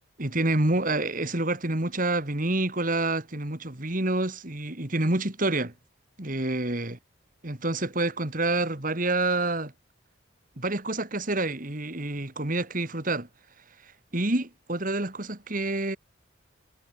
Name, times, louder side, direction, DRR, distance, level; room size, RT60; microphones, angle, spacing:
voice 1, 0.2-5.7 6.2-7.0 7.4-9.7 10.6-13.3 13.8-16.0, right 2 dB, 40° right, 2.4 m, -28 dB
head